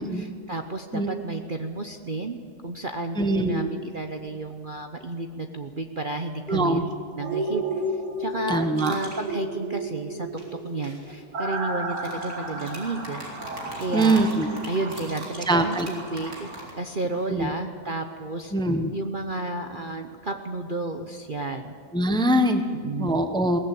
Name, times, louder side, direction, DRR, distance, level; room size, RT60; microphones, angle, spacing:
voice 1, 0.0-2.4 2.6-6.9 7.1-7.6 7.9-10.3 10.6-13.2 13.8-14.4 14.7-16.5 16.8-18.5 18.9-21.7 22.7-23.2, right 2 dB, 40° right, 5 dB, 0.9 m, -32 dB
voice 2, 3.2-3.7 6.5-6.8 8.5-8.9 13.9-14.5 15.5-15.9 17.3-17.5 18.5-18.9 21.9-22.6 23.0-23.6, right 1 dB, 5° left, 7 dB, 0.9 m, -23 dB
sound 1, 7.2-15.1 15.4-15.5, right 2 dB, 85° right, 3.3 m, -33 dB
sound 2, 8.7-9.2 10.4-11.1 11.9-17.3, right 1 dB, 60° right, 4.1 m, -39 dB
21.5 x 18.0 x 8.4 m, 2.1 s
omnidirectional pair, 1.8 m